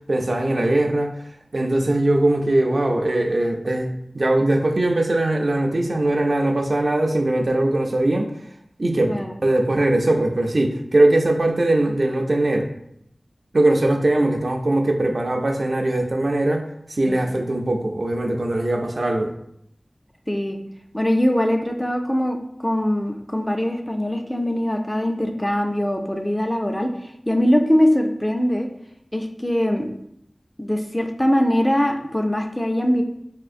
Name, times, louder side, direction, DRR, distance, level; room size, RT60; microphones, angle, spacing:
voice 1, 0.1-1.1 1.5-8.3 8.8-12.7 13.5-19.3, right 1 dB, 60° right, 3 dB, 0.4 m, -20 dB
voice 2, 20.3-20.6 20.9-26.9 27.3-28.7 29.1-29.9 30.6-33.0, equal, 15° left, 4 dB, 0.3 m, -22 dB
3.5 x 2.5 x 2.4 m, 0.73 s
wide cardioid pair, 55°, 0 cm